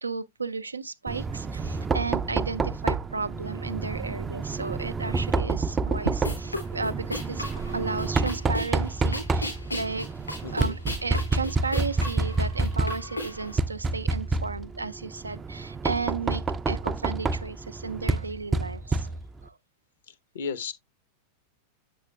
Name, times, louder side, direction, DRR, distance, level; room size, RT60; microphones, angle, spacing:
voice 1, 0.0-7.5 7.7-10.1 10.5-19.2 19.4-19.6, right 4 dB, 80° right, 0.4 m, -34 dB
Knock, 1.1-19.5, right 3 dB, 20° right, 0.4 m, -29 dB
sound 1, 6.1-13.5, left 1 dB, 80° left, 4.2 m, -36 dB
voice 2, 10.4-10.8 20.3-20.7, left 5 dB, 60° left, 0.8 m, -33 dB
7.9 x 6.8 x 2.2 m
figure-of-eight pair, 90°, 0 cm